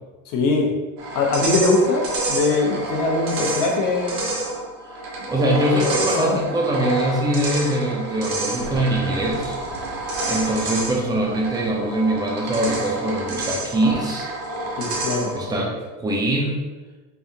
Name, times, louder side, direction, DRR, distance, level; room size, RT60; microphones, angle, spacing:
voice 1, 0.3-0.7 1.1-4.2 5.2-5.3 5.8-6.4 14.8-15.6, left 3 dB, 45° left, -1 dB, 0.9 m, -22 dB
sound 1, 1.0-15.5, right 2 dB, 75° right, 1.4 m, -28 dB
voice 2, 5.3-9.6 10.2-14.3 15.3-15.7 16.0-16.6, right 1 dB, 10° right, -2 dB, 0.5 m, -22 dB
sound 2, 8.6-13.9, right 1 dB, 25° left, 1.5 m, -40 dB
3.5 x 3.4 x 2.7 m, 1.2 s
supercardioid pair, 125°, 45 cm